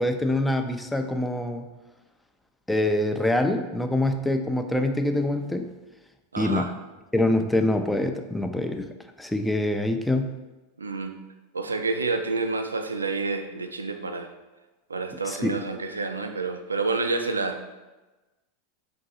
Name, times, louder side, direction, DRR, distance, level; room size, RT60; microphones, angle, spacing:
voice 1, 0.0-1.7 2.7-5.7 6.4-6.7 7.1-8.9 9.2-10.4 15.2-15.5, left 1 dB, 5° left, 5 dB, 0.4 m, -25 dB
voice 2, 6.3-6.7 10.8-11.2 11.5-14.3 14.9-17.6, right 3 dB, 90° right, 6 dB, 0.3 m, -29 dB
3.9 x 2.6 x 4.0 m, 1.1 s
hypercardioid pair, 90°, 0 cm